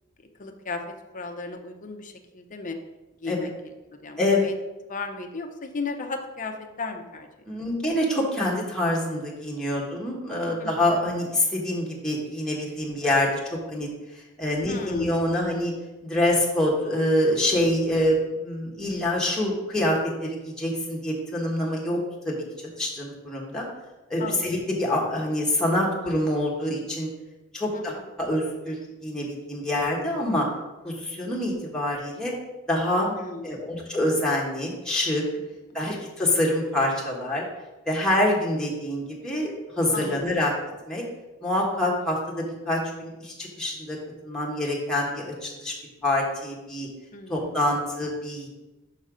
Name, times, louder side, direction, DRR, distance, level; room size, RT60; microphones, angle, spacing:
voice 1, 0.4-0.8 1.1-2.8 3.2-3.7 4.0-4.5 4.9-7.3 7.6-7.7 10.6-10.7 14.7-15.1 24.2-24.5 27.7-28.1 33.1-33.7 35.7-35.8 39.9-40.3 47.1-47.7, left 3 dB, 40° left, 4 dB, 0.7 m, -35 dB
voice 2, 4.2-4.5 7.5-13.9 14.1-15.7 16.0-22.0 22.2-22.4 22.8-23.7 24.1-27.1 27.5-30.4 30.8-32.3 32.7-33.1 33.4-35.2 35.7-37.5 37.9-40.5 40.9-41.0 41.4-44.0 44.2-45.7 46.0-46.9 47.3-48.5, left 1 dB, 5° left, -4 dB, 1.3 m, -26 dB
5.7 x 5.4 x 5.0 m, 1.0 s
head